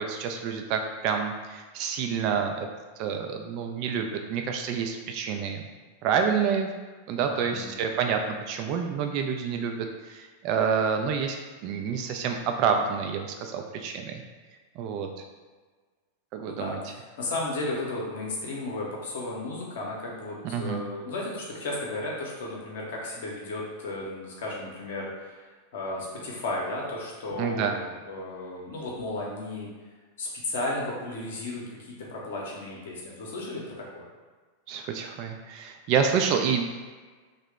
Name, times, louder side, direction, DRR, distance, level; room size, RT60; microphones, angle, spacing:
voice 1, 0.0-2.7 3.0-5.6 6.0-6.7 7.1-11.4 11.6-14.2 14.8-15.1 16.3-16.8 20.5-20.8 27.4-27.7 34.7-36.6, right 6 dB, 40° right, 4 dB, 0.4 m, -28 dB
voice 2, 7.2-7.8 16.4-29.7 30.2-34.0, left 2 dB, 55° left, -3 dB, 0.7 m, -34 dB
2.7 x 2.1 x 3.4 m, 1.4 s
figure-of-eight pair, 90°, 0 cm